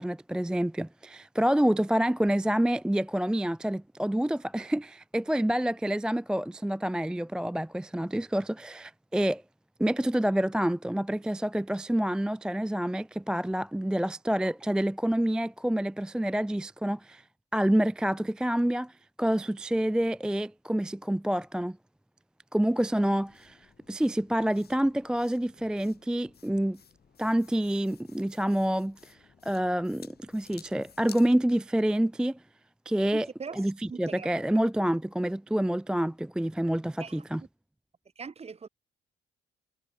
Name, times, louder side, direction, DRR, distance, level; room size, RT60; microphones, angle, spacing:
voice 1, 0.0-9.4 9.8-17.2 17.5-21.8 22.5-26.8 27.2-32.4 32.9-33.3 33.5-37.4, right 1 dB, 5° right, 0.4 m, -28 dB
sound 1, 23.2-31.3, left 7 dB, 50° left, 7.5 m, -55 dB
voice 2, 33.1-34.4 37.0-37.2 38.2-38.7, right 5 dB, 30° right, 1.2 m, -41 dB
cardioid pair, 90°, 20 cm